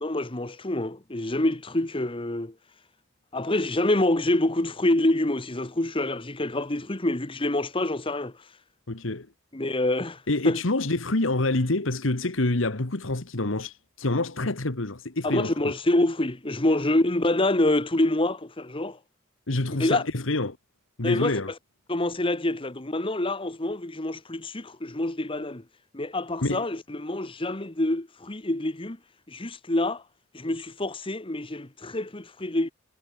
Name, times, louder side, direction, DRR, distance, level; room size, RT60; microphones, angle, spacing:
voice 1, 0.0-2.5 3.3-8.3 9.5-10.6 15.2-19.0 19.8-20.0 21.0-21.4 21.9-25.6 25.9-29.0 29.3-30.0 30.3-32.7, left 1 dB, 25° left, 1.3 m, -26 dB
voice 2, 8.9-9.3 10.3-15.7 19.5-20.6 21.0-21.5 26.4-26.7, left 2 dB, 70° left, 1.7 m, -27 dB
head